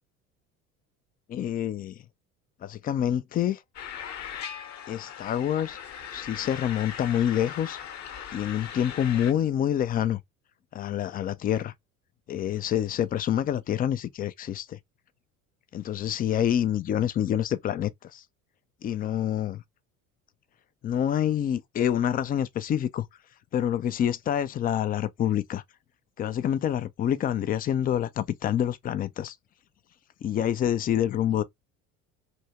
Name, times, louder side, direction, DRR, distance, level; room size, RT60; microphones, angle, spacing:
voice 1, 1.3-2.0 2.6-3.6 4.9-5.8 6.1-7.8 8.3-10.2 10.7-11.7 12.3-14.8 15.7-18.2 18.8-19.6 20.8-23.1 23.5-25.6 26.2-29.3 30.2-31.4, left 10 dB, 20° left, 0.4 m, -27 dB
sound 1, 3.7-9.3, left 8 dB, 40° left, 0.9 m, -39 dB
3.4 x 2.7 x 2.8 m
hypercardioid pair, 65°, 43 cm